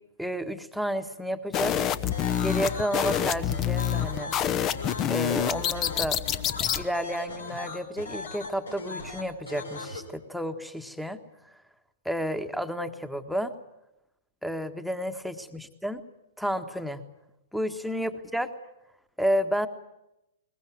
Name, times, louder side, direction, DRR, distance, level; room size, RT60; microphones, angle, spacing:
voice 1, 0.2-1.7 2.4-4.3 5.1-6.2 6.8-11.2 12.0-13.5 14.4-16.0 16.4-17.0 17.5-18.5 19.2-19.7, equal, ahead, 10 dB, 1.5 m, -31 dB
sound 1, 1.5-6.8, left 10 dB, 25° left, 1.0 m, -27 dB
sound 2, 2.1-10.0, left 3 dB, 75° left, 4.6 m, -38 dB
22.0 x 20.5 x 9.4 m, 0.88 s
figure-of-eight pair, 110°, 0 cm